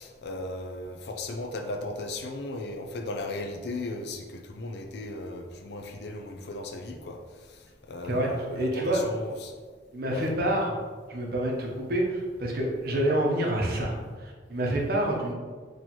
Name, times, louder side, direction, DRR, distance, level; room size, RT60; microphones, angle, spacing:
voice 1, 0.0-9.5 10.1-10.3, left 2 dB, 60° left, 4 dB, 0.4 m, -36 dB
voice 2, 8.0-9.0 9.9-10.7 11.1-15.3, right 1 dB, 55° right, -1 dB, 0.8 m, -27 dB
4.4 x 3.1 x 2.9 m, 1.5 s
head